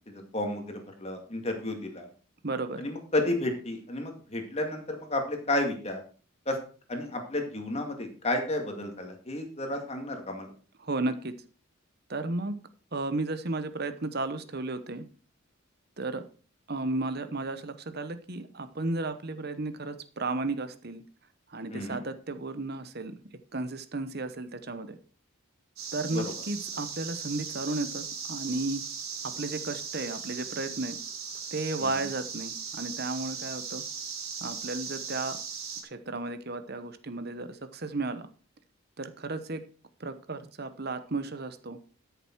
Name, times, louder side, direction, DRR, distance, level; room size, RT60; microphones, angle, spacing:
voice 1, 0.1-2.1 2.8-6.0 6.5-6.6 6.9-10.5 21.7-22.0 26.1-26.3 31.8-32.0, left 1 dB, 30° left, 4 dB, 2.2 m, -32 dB
voice 2, 2.4-2.9 10.8-11.3 12.1-12.6 12.9-15.1 16.0-16.2 16.7-21.0 21.5-25.0 25.9-28.8 29.2-31.0 31.5-33.8 34.4-35.4 35.8-38.3 39.0-39.6 40.0-41.8, right 2 dB, 50° right, 10 dB, 1.0 m, -34 dB
sound 1, 25.8-35.8, right 6 dB, 85° right, 3.1 m, -38 dB
13.0 x 6.9 x 4.6 m, 0.39 s
head